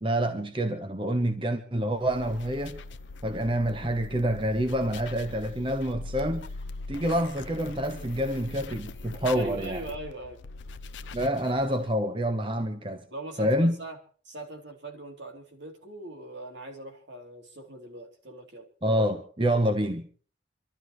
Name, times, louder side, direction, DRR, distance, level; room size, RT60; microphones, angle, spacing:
voice 1, 0.0-2.8 3.2-6.5 6.9-9.8 11.1-13.1 13.4-13.8 18.8-20.1, equal, 25° right, 1.1 m, -27 dB
sound 1, 2.0-11.9, left 3 dB, 80° left, 0.6 m, -41 dB
voice 2, 9.3-10.4 13.1-14.0 14.2-18.7, right 2 dB, 75° right, 3.2 m, -41 dB
26.0 x 12.5 x 3.1 m
head